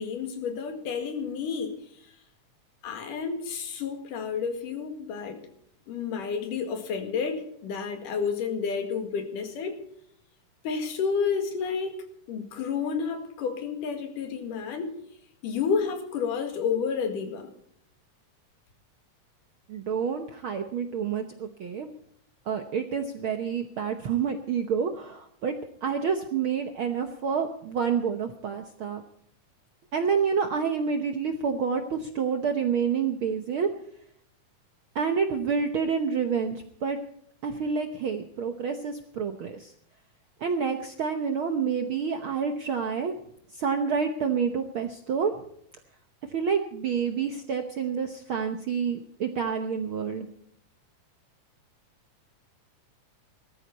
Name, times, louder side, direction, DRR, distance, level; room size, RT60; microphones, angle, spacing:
voice 1, 0.0-1.8 2.8-5.4 5.9-9.8 10.6-15.0 15.4-17.5, left 6 dB, 85° left, 3.5 m, -30 dB
voice 2, 19.7-21.9 22.5-25.5 25.8-29.0 29.9-33.7 34.9-37.0 37.4-39.7 40.4-43.1 43.5-45.3 46.3-50.3, right 6 dB, 65° right, 1.3 m, -28 dB
19.0 x 13.5 x 4.1 m
omnidirectional pair, 3.7 m